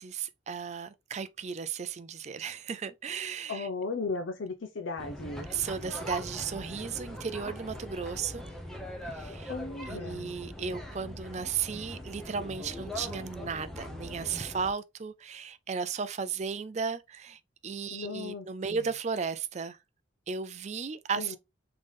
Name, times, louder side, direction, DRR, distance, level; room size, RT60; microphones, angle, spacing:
voice 1, 0.0-3.7 5.5-8.4 9.1-9.5 9.9-19.8 20.3-21.4, right 6 dB, 35° right, 0.4 m, -35 dB
voice 2, 3.5-5.5 9.5-10.4 17.9-18.5 21.2-21.4, left 3 dB, 75° left, 0.6 m, -36 dB
sound 1, 5.0-14.7, left 1 dB, ahead, 0.8 m, -41 dB
3.8 x 3.7 x 3.4 m
head